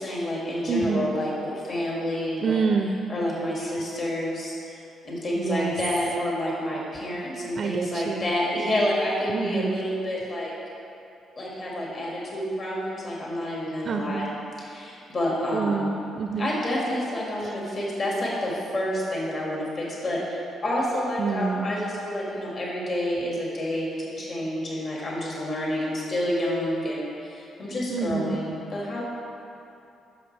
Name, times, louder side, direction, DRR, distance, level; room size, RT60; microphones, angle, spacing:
voice 1, 0.0-2.6 3.1-4.8 5.0-10.5 11.4-14.3 14.6-16.0 16.4-29.1, left 1 dB, 45° left, -4 dB, 2.0 m, -29 dB
voice 2, 0.7-1.1 2.4-3.0 5.4-5.7 7.6-8.3 9.3-9.8 13.8-14.3 15.5-16.5 17.4-17.6 21.2-21.7 27.9-28.4, right 5 dB, 50° right, 5 dB, 0.4 m, -27 dB
11.0 x 6.4 x 3.4 m, 2.8 s
cardioid pair, 90°, 0 cm